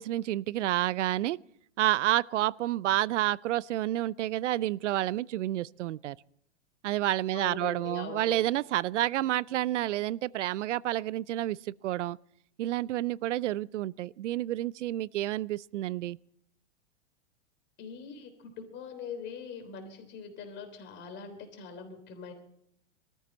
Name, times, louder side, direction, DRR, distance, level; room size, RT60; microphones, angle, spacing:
voice 1, 0.0-1.4 1.8-6.2 6.8-12.2 12.6-16.2, right 14 dB, 85° right, 0.5 m, -29 dB
voice 2, 7.3-8.4 17.8-22.3, left 6 dB, 30° left, 3.6 m, -42 dB
21.0 x 14.0 x 4.2 m
hypercardioid pair, 130°, 35 cm